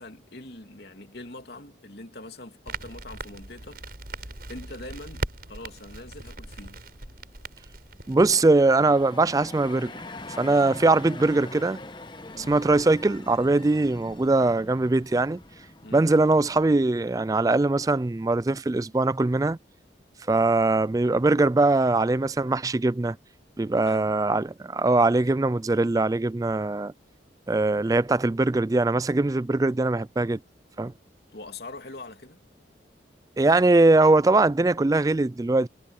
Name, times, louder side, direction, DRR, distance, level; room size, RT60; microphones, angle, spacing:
voice 1, 0.0-3.8 4.2-6.8 12.3-12.6 15.8-16.1 23.8-24.2 31.3-32.4, left 2 dB, 55° left, 3.0 m, -43 dB
Crackle, 2.7-8.4, right 2 dB, 50° right, 7.6 m, -39 dB
sound 1, 8.1-16.8, left 2 dB, 25° left, 1.2 m, -43 dB
voice 2, 8.1-9.9 10.4-11.8 12.4-15.4 15.9-19.6 20.3-23.2 23.6-26.9 27.5-30.4 30.8-30.9 33.4-35.7, right 2 dB, 20° right, 0.3 m, -21 dB
head